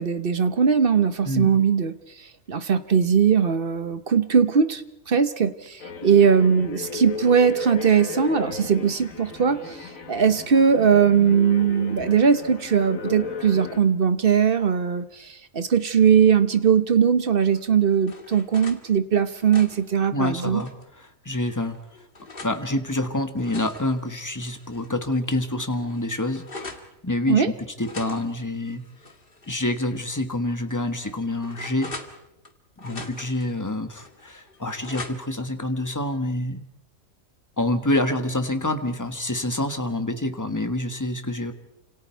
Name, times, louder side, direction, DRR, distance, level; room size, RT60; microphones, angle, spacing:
voice 1, 0.0-1.9 2.5-20.6 27.3-27.5 33.0-33.1, right 7 dB, 45° right, 11 dB, 1.2 m, -20 dB
sound 1, 5.8-13.8, left 4 dB, 80° left, 2.0 m, -36 dB
sound 2, 17.5-18.8 19.2-20.9 21.5-22.6 23.2-24.9 25.3-25.4 25.7-26.9 27.8-29.6 30.0-30.1 30.7-32.5 32.8-33.5 34.0-35.5, left 3 dB, 45° left, 2.1 m, -42 dB
voice 2, 20.1-20.7 21.0-21.8 22.4-26.5 27.0-28.8 29.5-31.9 32.8-36.6 37.6-41.5, left 1 dB, 15° left, 7 dB, 1.5 m, -27 dB
29.5 x 27.0 x 4.6 m, 0.85 s
omnidirectional pair, 1.4 m